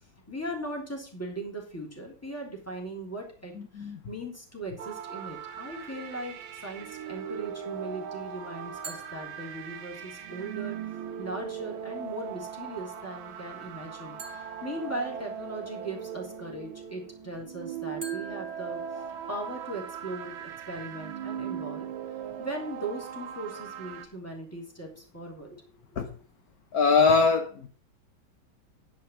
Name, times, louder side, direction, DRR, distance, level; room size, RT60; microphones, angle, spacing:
voice 1, 0.3-10.8 11.2-19.0 19.3-21.9 22.4-26.0, right 1 dB, 5° left, 0 dB, 3.1 m, -39 dB
voice 2, 3.6-4.0 26.0-26.1 26.7-27.7, left 4 dB, 55° left, 6 dB, 1.3 m, -22 dB
sound 1, 4.8-24.1, right 8 dB, 80° right, 1.8 m, -39 dB
sound 2, 8.8-10.1 14.2-15.7 18.0-19.7, right 1 dB, 20° right, 3.8 m, -47 dB
11.0 x 5.2 x 7.0 m, 0.41 s
omnidirectional pair, 2.2 m